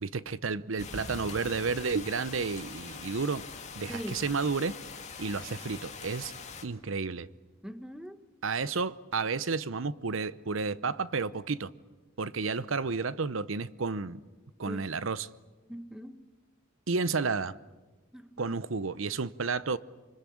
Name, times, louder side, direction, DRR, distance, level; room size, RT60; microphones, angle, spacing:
voice 1, 0.0-3.4 3.8-4.8 5.2-6.3 6.6-7.3 8.4-11.7 12.2-14.2 14.6-15.3 16.9-17.6 18.4-19.8, right 4 dB, 75° right, 0.8 m, -31 dB
sound 1, 0.8-6.6, left 5 dB, 35° left, 2.3 m, -43 dB
voice 2, 3.9-4.2 7.6-8.2 14.7-14.8 15.7-16.2 18.1-18.6, equal, 5° right, 1.1 m, -41 dB
26.5 x 24.5 x 8.6 m
head